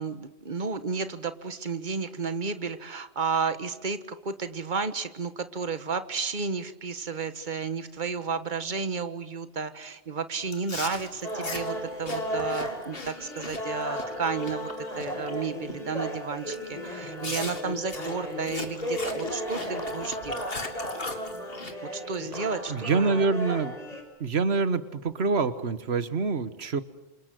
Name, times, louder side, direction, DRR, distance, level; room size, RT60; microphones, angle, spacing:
voice 1, 0.0-20.5 21.8-23.3, right 5 dB, 50° right, 11 dB, 1.6 m, -32 dB
Chewing mastication, 10.5-15.3 15.7-16.0 16.5-16.6 17.2-21.7, left 2 dB, 65° left, 2.7 m, -39 dB
sound 1, 11.2-24.0, equal, 40° left, 5.8 m, -35 dB
voice 2, 22.7-23.8 24.2-26.8, right 4 dB, 90° right, 12 dB, 1.5 m, -26 dB
27.5 x 27.0 x 7.8 m, 0.96 s
omnidirectional pair, 1.1 m